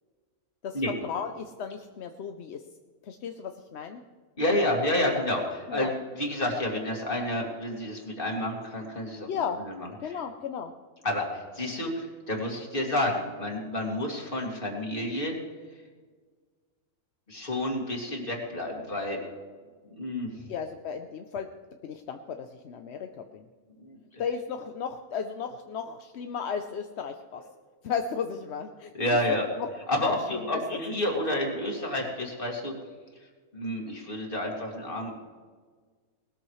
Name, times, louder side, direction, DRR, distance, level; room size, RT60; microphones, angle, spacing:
voice 1, 0.6-2.6 3.0-4.0 5.7-5.9 9.3-9.6 10.0-10.7 20.5-21.5 21.8-23.4 24.2-27.4 27.8-29.2 29.6-29.7 30.0-30.8 31.1-31.2, left 6 dB, 55° left, 6 dB, 0.8 m, -34 dB
voice 2, 4.4-9.7 10.0-10.2 11.0-15.4 17.3-19.2 19.9-20.5 23.8-24.2 28.9-29.5 29.9-32.7 33.5-35.1, left 1 dB, 35° left, 0 dB, 2.6 m, -30 dB
19.5 x 13.5 x 3.2 m, 1.5 s
omnidirectional pair, 1.6 m